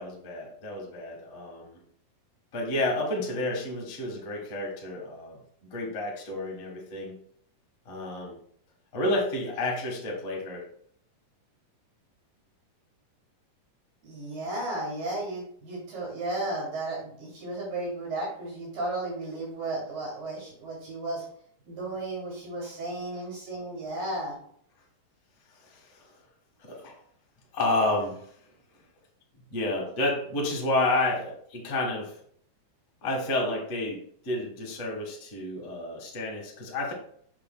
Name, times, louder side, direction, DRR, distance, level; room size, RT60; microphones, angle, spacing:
voice 1, 0.0-1.8 2.5-7.2 7.8-8.4 8.9-10.7 25.6-26.1 26.6-26.9 27.5-28.3 29.5-32.2 33.0-36.9, left 2 dB, 65° left, -1 dB, 0.7 m, -30 dB
voice 2, 14.0-21.2 21.6-24.4, right 2 dB, 80° right, -5 dB, 4.2 m, -34 dB
7.3 x 6.3 x 2.2 m, 0.62 s
omnidirectional pair, 3.9 m